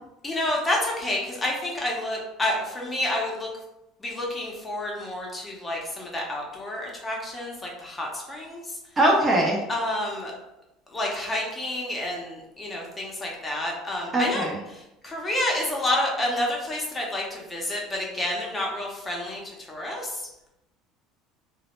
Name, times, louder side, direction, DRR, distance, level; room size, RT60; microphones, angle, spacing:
voice 1, 0.2-3.5 4.0-8.8 9.7-10.3 10.9-14.5 14.7-20.2, left 1 dB, 20° left, -2 dB, 0.7 m, -29 dB
voice 2, 9.0-9.6 14.1-14.6, right 1 dB, 25° right, -1 dB, 0.5 m, -21 dB
2.0 x 2.0 x 3.0 m, 0.89 s
supercardioid pair, 100°, 0 cm